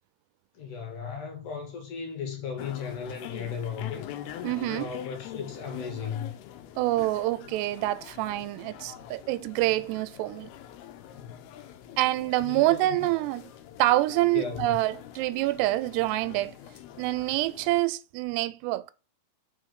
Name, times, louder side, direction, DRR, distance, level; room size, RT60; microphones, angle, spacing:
voice 1, 0.5-4.5 4.7-6.3 12.3-12.9 14.3-14.8, left 6 dB, 60° left, 2.4 m, -36 dB
sound 1, 2.6-17.8, left 11 dB, 80° left, 2.5 m, -44 dB
voice 2, 4.4-4.9 6.8-10.5 12.0-13.5 13.8-16.5 17.0-18.9, right 17 dB, 85° right, 2.6 m, -26 dB
5.8 x 4.5 x 6.4 m
omnidirectional pair, 4.7 m